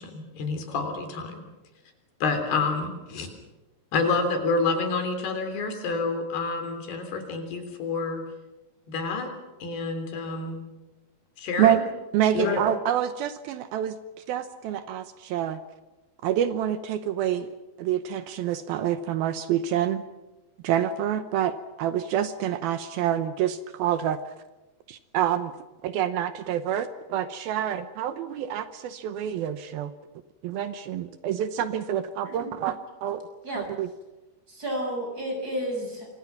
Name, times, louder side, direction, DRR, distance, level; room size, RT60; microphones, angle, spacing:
voice 1, 0.0-1.4 2.2-3.3 3.9-8.2 8.9-9.3 9.6-10.6 11.4-11.8 12.3-12.6, left 4 dB, 80° left, 6 dB, 5.5 m, -28 dB
voice 2, 12.1-14.0 14.3-15.6 16.2-17.5 17.8-20.0 20.6-24.2 24.9-25.5 25.8-29.9 30.4-33.2 33.6-33.9, right 10 dB, 75° right, 11 dB, 2.7 m, -27 dB
voice 3, 34.5-36.1, equal, 20° right, 2 dB, 7.0 m, -31 dB
28.5 x 24.0 x 5.9 m, 1.1 s
omnidirectional pair, 4.6 m